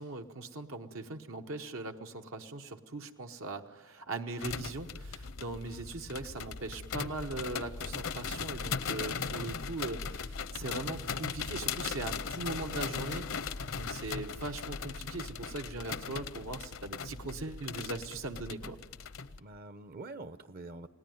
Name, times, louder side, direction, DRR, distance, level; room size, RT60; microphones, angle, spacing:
voice 1, 0.0-13.3 13.8-18.8, right 2 dB, 70° right, 5 dB, 1.1 m, -40 dB
sound 1, 4.4-19.4, left 6 dB, 70° left, 0.8 m, -38 dB
voice 2, 19.4-20.9, right 2 dB, 45° right, 13 dB, 0.8 m, -46 dB
28.0 x 18.5 x 9.3 m, 1.4 s
head